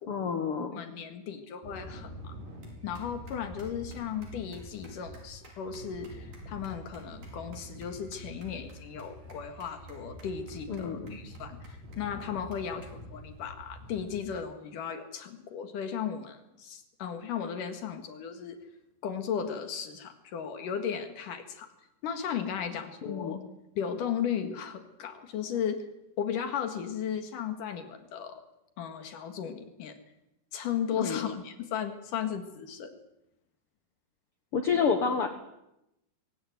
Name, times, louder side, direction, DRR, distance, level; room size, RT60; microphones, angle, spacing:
voice 1, 0.1-0.8 10.7-11.2 23.0-23.4 30.9-31.3 34.5-35.3, left 6 dB, 55° left, 7 dB, 1.9 m, -29 dB
voice 2, 0.6-2.4 2.8-18.6 19.0-21.7 22.0-23.4 23.8-25.9 26.2-28.4 28.8-30.0 30.5-32.9, left 8 dB, 70° left, 7 dB, 3.3 m, -35 dB
sound 1, 1.6-14.3, right 1 dB, 70° right, 7.0 m, -46 dB
23.0 x 17.0 x 9.4 m, 0.88 s
omnidirectional pair, 3.9 m